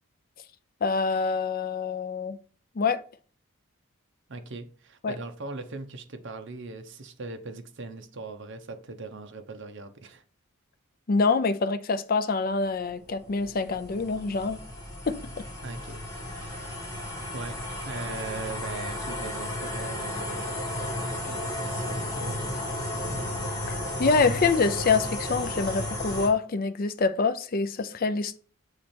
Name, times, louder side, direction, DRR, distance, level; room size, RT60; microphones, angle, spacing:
voice 1, 0.8-2.4 2.8-3.0 5.0-5.2 11.1-14.6 15.1-15.2 23.7-28.4, left 4 dB, 40° left, 0.4 m, -26 dB
voice 2, 4.3-10.2 15.6-20.8 21.3-22.6 24.3-24.4, right 3 dB, 55° right, 0.8 m, -40 dB
sound 1, 12.8-26.3, left 1 dB, 15° left, 1.9 m, -33 dB
7.0 x 3.2 x 4.3 m
head